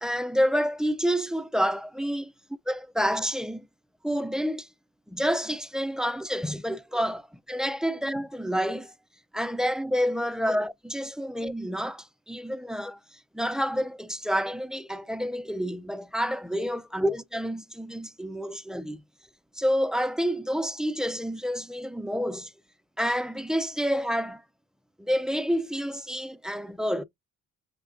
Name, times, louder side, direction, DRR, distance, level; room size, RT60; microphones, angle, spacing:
voice 1, 0.0-2.3 2.7-3.7 4.0-4.7 5.1-8.9 9.3-19.0 19.6-22.5 23.0-24.4 25.0-27.0, equal, ahead, 0.3 m, -28 dB
5.9 x 3.3 x 2.5 m
cardioid pair, 90°, 30 cm